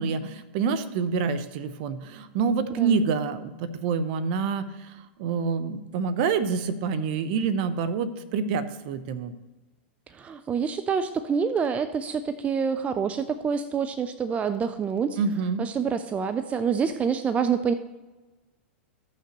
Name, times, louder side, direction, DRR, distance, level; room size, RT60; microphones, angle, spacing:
voice 1, 0.0-9.3 15.2-15.6, right 5 dB, 55° right, 13 dB, 0.8 m, -27 dB
voice 2, 10.2-15.2 15.6-17.7, right 6 dB, 20° right, 11 dB, 0.5 m, -27 dB
15.0 x 5.9 x 3.0 m, 1.1 s
hypercardioid pair, 105°, 6 cm